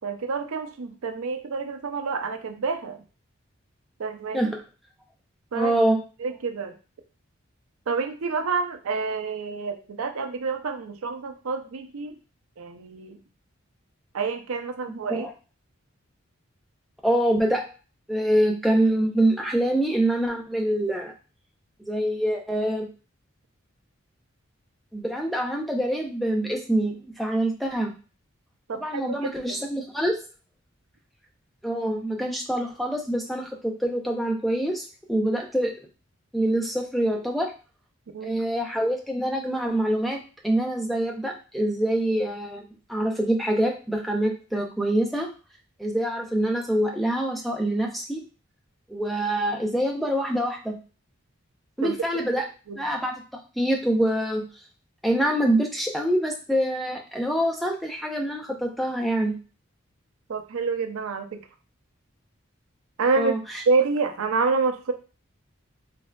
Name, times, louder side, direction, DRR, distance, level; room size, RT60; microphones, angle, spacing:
voice 1, 0.0-3.0 4.0-4.5 5.5-5.7 6.2-6.7 7.9-12.2 12.6-13.2 14.1-15.3 28.7-29.6 38.1-38.4 51.8-51.9 52.7-52.8 60.3-61.4 63.0-63.3 63.7-64.9, right 4 dB, 85° right, 6 dB, 0.5 m, -28 dB
voice 2, 5.5-6.0 14.8-15.3 17.0-17.7 18.1-21.1 21.9-22.9 24.9-27.9 28.7-30.2 31.6-35.7 36.3-37.5 38.2-40.2 40.4-45.3 45.8-48.2 48.9-50.7 51.8-52.5 52.8-53.1 53.6-54.4 55.0-59.3 63.2-63.6, right 1 dB, ahead, 1 dB, 0.4 m, -25 dB
3.5 x 3.2 x 2.2 m, 0.34 s
head